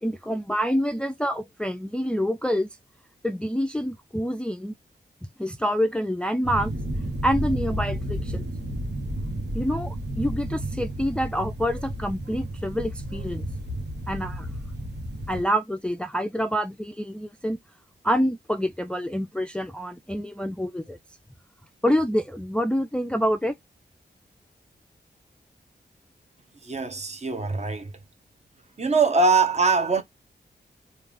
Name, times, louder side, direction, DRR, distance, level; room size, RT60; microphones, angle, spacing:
voice 1, 0.0-2.7 3.2-4.7 5.4-6.7 7.2-8.4 9.5-13.5 14.1-14.5 15.3-17.6 18.0-21.0 21.8-23.5, equal, 5° left, 0.4 m, -27 dB
sound 1, 6.4-15.4, right 1 dB, 80° right, 1.2 m, -32 dB
voice 2, 26.6-27.9 28.8-30.0, right 4 dB, 40° right, 0.9 m, -22 dB
3.2 x 2.5 x 3.5 m
wide cardioid pair, 80°, 17 cm